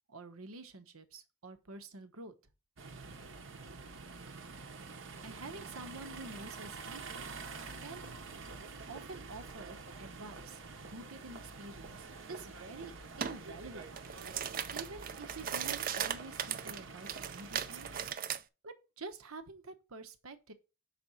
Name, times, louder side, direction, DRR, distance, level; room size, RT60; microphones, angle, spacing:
voice 1, 0.1-2.3 5.2-7.3 7.8-8.1 8.9-14.1 14.7-17.9 18.6-20.5, right 3 dB, 90° right, 1.0 m, -48 dB
sound 1, 2.8-18.1, right 4 dB, 60° right, 0.9 m, -47 dB
sound 2, 13.2-13.4 13.8-18.4, right 9 dB, 40° right, 0.4 m, -38 dB
5.9 x 4.2 x 6.1 m
head